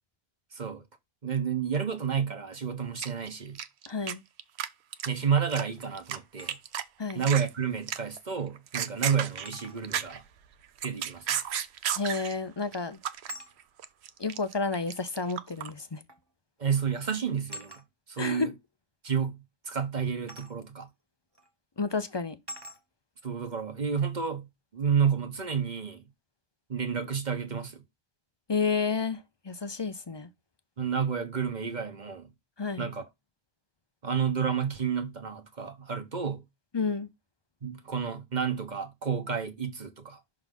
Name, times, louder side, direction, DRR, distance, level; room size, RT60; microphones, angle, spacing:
voice 1, 0.5-0.8 1.2-3.6 5.1-6.6 7.1-10.2 10.8-11.4 16.6-17.8 18.1-18.5 19.0-20.9 23.2-24.5 24.7-26.0 26.7-27.8 30.8-32.3 32.8-33.0 34.0-36.4 37.6-40.2, right 7 dB, 45° right, 1.1 m, -30 dB
sound 1, 3.0-4.1 4.4-4.7 4.9-6.2 6.5-6.8 7.1-7.5 7.9-8.2 8.6-10.3 10.6-12.4 12.7-13.3 13.6-15.7, right 9 dB, 80° right, 0.9 m, -32 dB
voice 2, 3.9-4.2 7.0-7.2 12.0-13.0 14.2-16.0 18.2-18.5 21.8-22.4 28.5-30.3 32.6-32.9 36.7-37.1, left 4 dB, 30° left, 0.5 m, -30 dB
sound 2, 6.1-6.6 8.1-8.2 9.4-9.8 12.1-12.4 13.3-13.5 14.7-14.8 16.1-16.3 16.6-16.9 17.5-17.9 20.3-20.6 21.4-21.5 22.5-22.8, equal, 25° right, 1.1 m, -44 dB
6.1 x 3.8 x 5.3 m
omnidirectional pair, 1.1 m